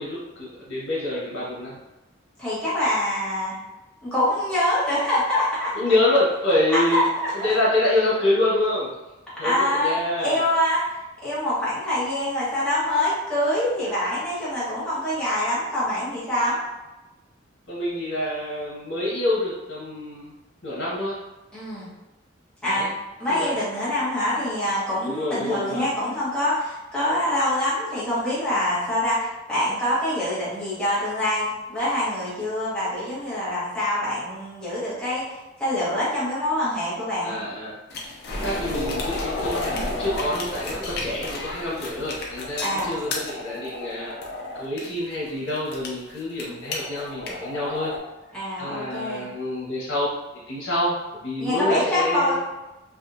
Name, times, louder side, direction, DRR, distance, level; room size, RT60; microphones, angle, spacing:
voice 1, 0.0-1.8 5.7-7.1 7.4-8.9 9.4-10.4 17.7-20.3 20.6-21.2 22.6-22.9 23.3-23.6 25.0-25.9 37.2-37.8 38.4-44.2 44.5-48.0 48.6-50.1 50.5-52.4, left 1 dB, 85° left, -7 dB, 1.0 m, -26 dB
voice 2, 2.4-3.6 4.0-5.8 6.7-7.3 9.4-9.9 10.2-11.0 11.2-16.6 21.5-21.9 22.6-22.9 23.2-37.4 42.6-42.9 48.3-49.3 51.4-52.4, left 1 dB, 5° left, -11 dB, 1.2 m, -25 dB
sound 1, 37.9-48.0, left 2 dB, 50° left, 0.6 m, -32 dB
3.5 x 2.5 x 2.6 m, 1.0 s
head